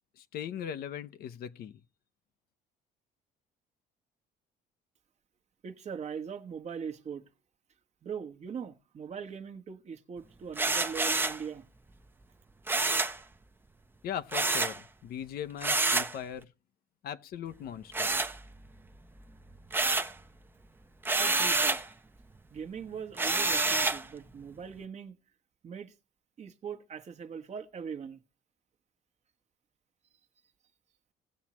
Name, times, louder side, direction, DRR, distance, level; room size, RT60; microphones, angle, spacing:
voice 1, 0.2-1.8 14.0-16.5 17.0-18.3, left 9 dB, 65° left, 0.7 m, -39 dB
voice 2, 5.6-7.2 8.0-11.7 21.2-21.8 22.5-25.2 25.6-25.9 26.4-28.2, right 6 dB, 40° right, 1.1 m, -41 dB
sound 1, 10.6-11.4 12.7-13.2 14.3-14.8 15.6-16.2 17.9-18.8 19.2-20.2 21.0-21.9 23.2-24.1, right 3 dB, 10° right, 0.7 m, -28 dB
17.5 x 7.2 x 2.9 m
cardioid pair, 110°, 17 cm